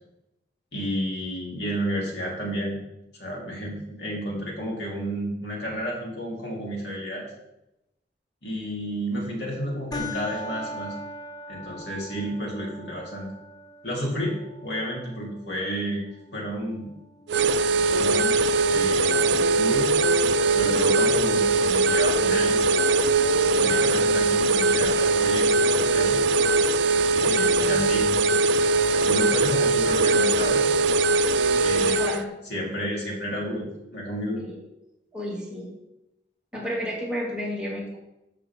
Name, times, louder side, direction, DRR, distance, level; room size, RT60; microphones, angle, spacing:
voice 1, 0.7-2.8 3.1-7.3 8.4-11.0 11.5-13.3 13.8-16.0 16.3-16.9 17.9-20.0 20.5-22.8 23.5-26.2 27.1-28.2 28.9-30.6 31.6-32.0 32.5-34.4, equal, 75° left, -3 dB, 3.3 m, -31 dB
sound 1, 9.9-18.9, left 1 dB, 20° left, 0.9 m, -41 dB
sound 2, 17.3-32.2, right 3 dB, 85° right, 0.4 m, -21 dB
voice 2, 27.2-27.9 31.8-32.4 34.4-34.5 35.1-35.7 36.5-38.0, equal, 5° right, -6 dB, 2.8 m, -32 dB
13.5 x 7.5 x 3.8 m, 0.89 s
head